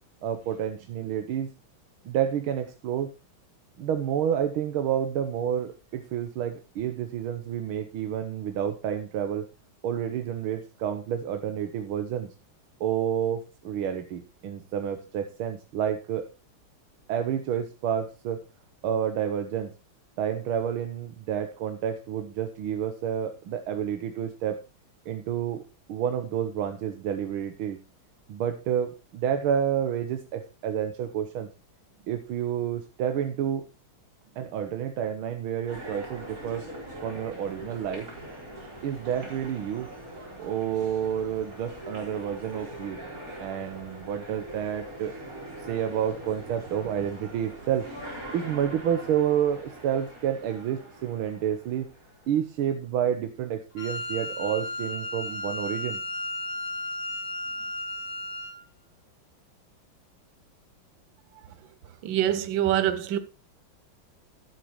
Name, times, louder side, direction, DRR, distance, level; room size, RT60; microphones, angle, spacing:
voice 1, 0.2-1.5 2.1-3.1 3.8-9.5 9.8-12.3 12.8-16.3 17.1-18.4 18.8-19.7 20.2-24.6 25.1-25.6 25.9-27.8 28.3-31.5 32.1-33.6 34.4-36.7 37.0-38.1 38.8-39.9 40.4-43.0 43.4-45.2 45.7-47.9 48.3-51.9 52.3-56.0, right 9 dB, 90° right, 1.8 m, -29 dB
sound 1, 35.7-52.3, right 1 dB, 40° right, 4.6 m, -42 dB
Wind instrument woodwind instrument, 53.8-58.6, left 2 dB, 75° left, 3.4 m, -34 dB
voice 2, 62.0-63.2, right 11 dB, 70° right, 1.6 m, -25 dB
12.0 x 11.0 x 3.1 m
omnidirectional pair, 2.3 m